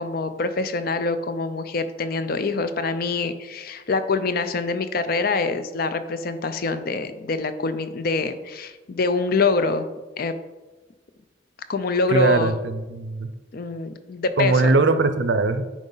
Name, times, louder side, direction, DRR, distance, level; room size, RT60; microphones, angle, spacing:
voice 1, 0.0-9.8 10.2-10.3 11.7-12.5 13.5-14.7, left 3 dB, 50° left, 10 dB, 0.5 m, -25 dB
voice 2, 12.1-13.3 14.4-15.7, right 3 dB, 65° right, 10 dB, 0.6 m, -20 dB
9.1 x 5.0 x 3.9 m, 1.2 s
head